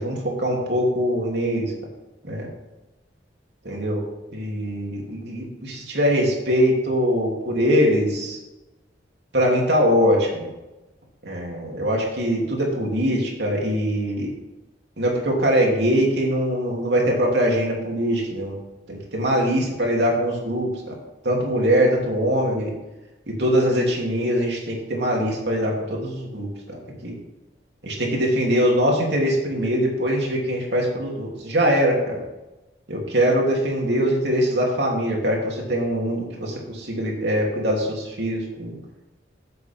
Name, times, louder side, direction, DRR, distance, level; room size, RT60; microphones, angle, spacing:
voice 1, 0.0-1.7 2.2-2.5 3.6-4.0 4.3-8.4 9.3-10.5 11.2-14.3 15.0-18.5 18.9-20.9 21.2-22.7 23.3-27.1 27.8-32.2 32.9-38.7, equal, 70° right, -2 dB, 3.1 m, -22 dB
15.5 x 7.8 x 3.6 m, 1.0 s
head